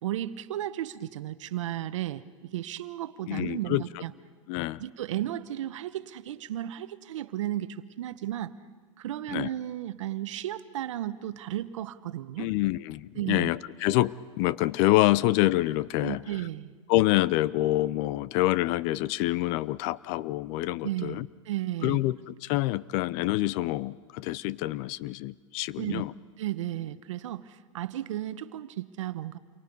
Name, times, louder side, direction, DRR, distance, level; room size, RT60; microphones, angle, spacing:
voice 1, 0.0-4.1 4.8-8.5 9.0-12.5 13.2-13.5 16.0-16.7 20.8-22.0 25.8-26.0 26.4-29.4, right 13 dB, 75° right, 13 dB, 1.1 m, -34 dB
voice 2, 3.3-3.8 4.5-4.8 9.3-9.5 12.4-16.2 16.9-21.3 21.8-26.1, left 17 dB, 45° left, 20 dB, 0.6 m, -26 dB
28.5 x 23.5 x 5.4 m, 1.5 s
hypercardioid pair, 120°, 16 cm